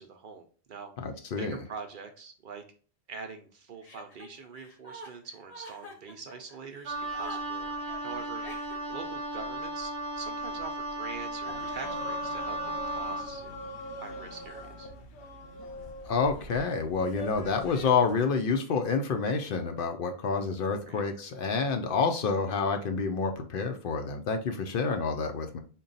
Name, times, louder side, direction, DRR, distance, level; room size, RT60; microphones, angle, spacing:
voice 1, 0.0-0.9 1.4-2.6 3.1-7.8 8.0-8.6 8.9-12.6 12.9-13.6 14.0-14.9 20.8-21.0, right 5 dB, 60° right, 5 dB, 0.7 m, -44 dB
voice 2, 1.0-1.6 16.0-25.6, left 5 dB, 65° left, 5 dB, 0.7 m, -28 dB
Chuckle chortle, 3.8-9.1, left 1 dB, 40° left, 1.0 m, -47 dB
Wind instrument woodwind instrument, 6.9-13.3, right 2 dB, 85° right, 0.9 m, -35 dB
sound 1, 11.4-18.1, left 2 dB, 85° left, 0.9 m, -42 dB
3.9 x 2.2 x 3.8 m, 0.40 s
omnidirectional pair, 1.1 m